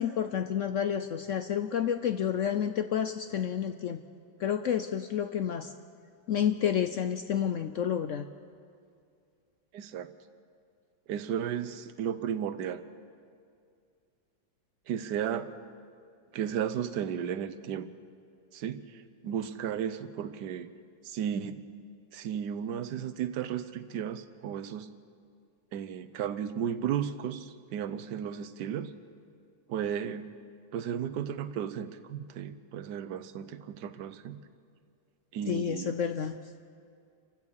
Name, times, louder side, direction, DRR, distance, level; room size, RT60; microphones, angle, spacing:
voice 1, 0.0-4.0 4.4-5.7 6.3-8.3 35.5-36.4, left 8 dB, 90° left, 9 dB, 0.6 m, -30 dB
voice 2, 9.7-10.1 11.1-12.8 14.9-15.5 16.3-17.9 18.5-20.7 21.0-21.6 22.1-24.9 25.7-28.9 29.7-30.3 30.7-34.4 35.3-35.9, right 9 dB, 65° right, 12 dB, 1.4 m, -34 dB
28.5 x 15.5 x 6.5 m, 2.3 s
omnidirectional pair, 2.1 m